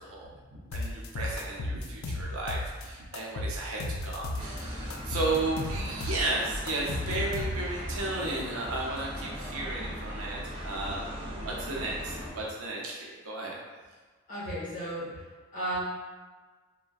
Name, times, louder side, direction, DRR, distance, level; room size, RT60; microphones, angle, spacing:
voice 1, 0.0-13.6, right 2 dB, 75° right, -3 dB, 0.6 m, -34 dB
sound 1, 0.7-2.9 3.1-4.6 4.9-7.8, left 2 dB, 70° left, 0.3 m, -34 dB
sound 2, 4.4-12.3, equal, 25° right, 0.5 m, -38 dB
voice 2, 14.3-15.3 15.5-15.8, right 1 dB, 35° left, -10 dB, 1.3 m, -34 dB
3.4 x 2.1 x 2.3 m, 1.4 s
head